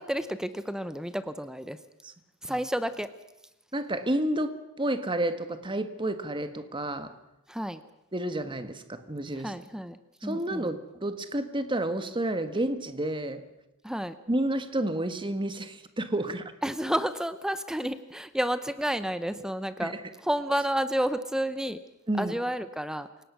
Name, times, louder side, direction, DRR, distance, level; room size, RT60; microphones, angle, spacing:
voice 1, 0.0-1.8 2.4-3.1 7.5-7.8 9.4-10.7 13.8-14.2 16.6-19.9 20.2-21.8 22.2-23.1, equal, 5° right, 12 dB, 0.8 m, -30 dB
voice 2, 3.7-4.5 4.8-7.1 8.1-9.5 10.2-13.4 14.3-16.4 19.8-19.9 22.1-22.3, right 1 dB, 20° right, 10 dB, 1.5 m, -30 dB
28.5 x 18.0 x 6.2 m, 0.91 s
head